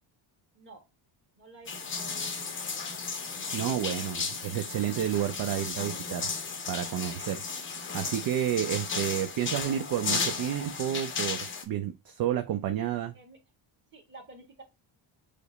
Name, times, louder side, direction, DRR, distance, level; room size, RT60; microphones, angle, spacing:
voice 1, 0.5-0.8 1.3-1.7 1.9-2.5 13.1-13.4 13.9-14.6, right 2 dB, 25° right, 1.4 m, -50 dB
sound 1, 1.7-11.6, left 4 dB, 25° left, 0.6 m, -34 dB
voice 2, 3.5-6.3 6.7-7.4 7.7-13.1, right 10 dB, 50° right, 0.5 m, -30 dB
5.0 x 2.0 x 3.9 m
cardioid pair, 145°, 48 cm